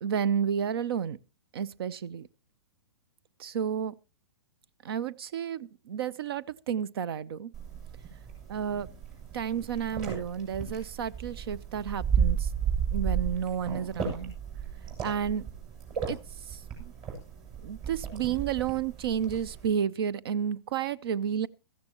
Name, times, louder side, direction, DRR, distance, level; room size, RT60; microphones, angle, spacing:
voice 1, 0.0-1.2 1.5-2.3 3.4-3.9 4.8-7.5 8.5-8.9 9.3-12.5 12.9-14.3 15.0-15.4 16.1-16.2 16.5-16.9 17.6-21.5, right 8 dB, 60° right, 0.7 m, -31 dB
sound 1, 7.5-19.7, right 7 dB, 35° right, 7.3 m, -33 dB
16.5 x 14.0 x 3.0 m
hypercardioid pair, 120°, 14 cm